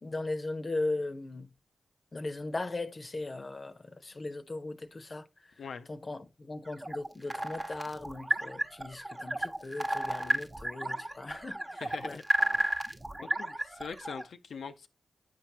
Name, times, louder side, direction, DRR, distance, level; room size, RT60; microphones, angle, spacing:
voice 1, 0.0-1.5 2.1-5.2 5.9-12.2, left 2 dB, 45° left, 0.7 m, -38 dB
sound 1, 6.7-14.2, right 1 dB, 25° right, 1.0 m, -33 dB
voice 2, 11.8-12.2 12.5-12.7 13.2-14.9, left 6 dB, 75° left, 0.4 m, -42 dB
8.9 x 4.5 x 2.9 m
supercardioid pair, 40°, 0 cm